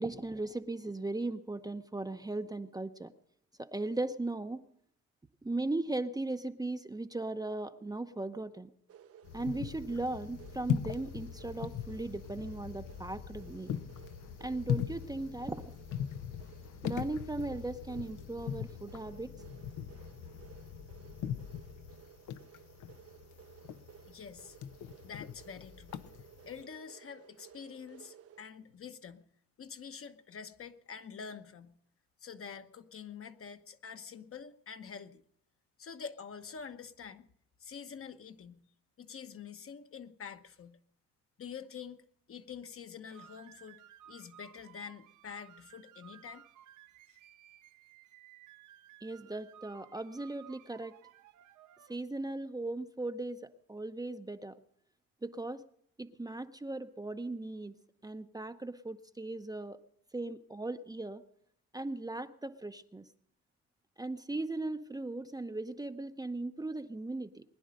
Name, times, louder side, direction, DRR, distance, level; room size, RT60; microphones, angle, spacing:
voice 1, 0.0-3.1 3.6-4.6 5.4-8.7 9.3-13.7 14.4-15.7 16.8-19.3 49.0-50.9 51.9-54.6 55.2-55.6 56.0-57.8 58.0-59.8 60.1-61.2 61.7-63.1 64.0-67.4, right 2 dB, 15° right, 8 dB, 0.7 m, -38 dB
sound 1, 8.9-28.4, right 9 dB, 50° right, 0.8 m, -57 dB
sound 2, 9.2-26.6, left 9 dB, 80° left, 0.8 m, -40 dB
voice 2, 24.1-24.6 25.0-26.0 26.5-29.2 29.6-31.8 32.2-35.2 35.8-37.3 37.6-38.6 39.0-40.8 41.4-43.8 44.1-46.4, left 6 dB, 45° left, 8 dB, 1.1 m, -47 dB
sound 3, 43.1-52.0, right 11 dB, 85° right, 0.7 m, -57 dB
21.0 x 10.0 x 6.4 m, 0.66 s
cardioid pair, 90°, 30 cm